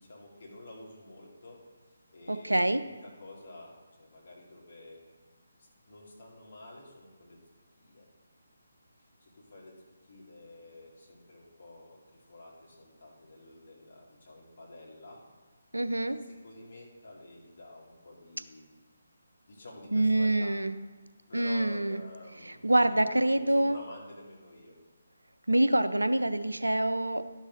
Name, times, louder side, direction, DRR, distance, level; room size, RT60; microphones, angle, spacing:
voice 1, 0.0-1.6 1.9-5.0 5.8-7.4 7.8-8.1 9.0-15.2 15.8-18.6 19.5-20.5 21.3-24.8, left 1 dB, 45° left, -3 dB, 2.3 m, -50 dB
voice 2, 2.3-2.8 15.7-16.2 19.9-20.7 21.3-22.0 22.6-23.8 25.5-27.2, right 1 dB, 80° right, 12 dB, 0.4 m, -26 dB
11.5 x 6.3 x 3.8 m, 1.4 s
figure-of-eight pair, 145°, 0 cm